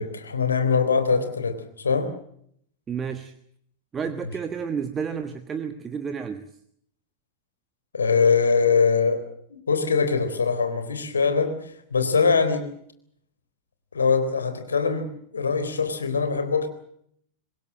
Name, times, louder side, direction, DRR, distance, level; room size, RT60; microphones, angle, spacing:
voice 1, 0.0-2.1 4.3-4.4 7.9-9.2 9.5-11.6 11.9-12.7 13.9-15.1 15.3-16.7, left 5 dB, 75° left, 8 dB, 3.7 m, -22 dB
voice 2, 2.9-3.3 3.9-6.5, right 6 dB, 20° right, 9 dB, 1.4 m, -31 dB
24.5 x 20.5 x 7.6 m, 0.69 s
figure-of-eight pair, 90°, 0 cm